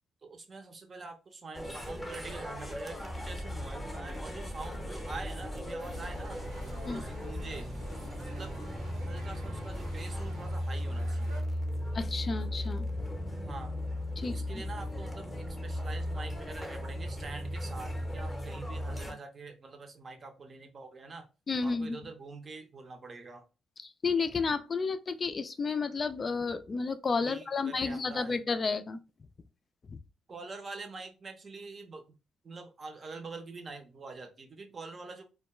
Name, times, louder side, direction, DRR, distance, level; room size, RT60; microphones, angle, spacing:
voice 1, 0.2-6.4 6.8-7.8 8.2-8.5 9.0-11.4 13.5-13.8 14.3-21.3 21.6-23.4 27.2-28.4 30.3-32.2 32.4-35.3, right 3 dB, 40° right, 0.6 m, -45 dB
sound 1, 1.5-19.1, left 1 dB, 5° left, 0.7 m, -36 dB
HK large crowd outside, 5.8-11.4, right 1 dB, 85° right, 0.9 m, -50 dB
voice 2, 11.9-12.9 14.2-14.6 21.5-22.0 23.8-29.0 29.9-30.0, left 4 dB, 35° left, 0.3 m, -32 dB
2.2 x 2.2 x 2.9 m
cardioid pair, 90°, 0 cm